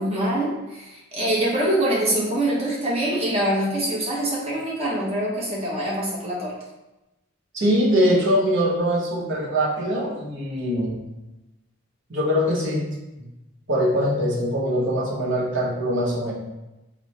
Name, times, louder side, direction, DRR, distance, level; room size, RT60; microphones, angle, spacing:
voice 1, 0.0-6.5, right 1 dB, 30° right, -5 dB, 0.9 m, -24 dB
voice 2, 7.5-11.0 12.1-12.9 13.7-16.3, equal, 60° right, -5 dB, 0.9 m, -22 dB
3.0 x 2.1 x 4.1 m, 1.0 s
head